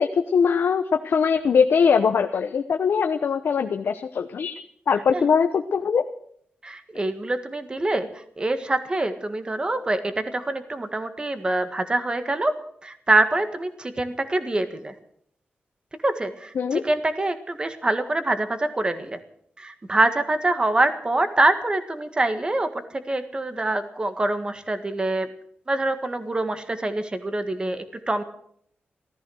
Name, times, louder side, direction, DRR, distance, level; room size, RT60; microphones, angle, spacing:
voice 1, 0.0-6.0 16.5-16.8, left 6 dB, 65° left, 5 dB, 0.9 m, -21 dB
voice 2, 4.9-5.3 6.6-12.5 12.8-14.9 16.0-19.2 19.6-22.7 23.1-25.3 25.7-28.2, right 2 dB, 25° right, 9 dB, 1.7 m, -25 dB
15.5 x 14.0 x 6.4 m, 0.65 s
wide cardioid pair, 125°, 4 cm